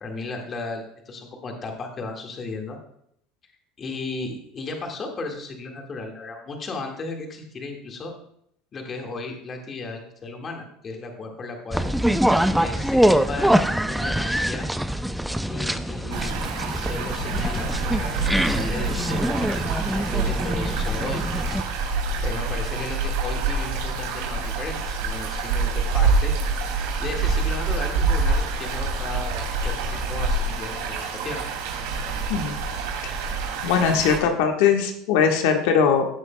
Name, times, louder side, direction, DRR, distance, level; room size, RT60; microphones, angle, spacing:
voice 1, 0.0-2.8 3.8-8.1 8.7-11.9 12.5-13.5 13.9-14.7 15.4-21.2 22.2-26.3 27.0-31.5, left 3 dB, 30° left, 2 dB, 1.7 m, -35 dB
sound 1, 11.7-21.6, equal, ahead, 0.4 m, -24 dB
sound 2, 16.1-34.2, right 3 dB, 80° right, 2.5 m, -26 dB
voice 2, 33.6-36.1, left 7 dB, 80° left, 3 dB, 1.3 m, -20 dB
15.5 x 7.7 x 2.2 m, 0.71 s
cardioid pair, 140°, 0 cm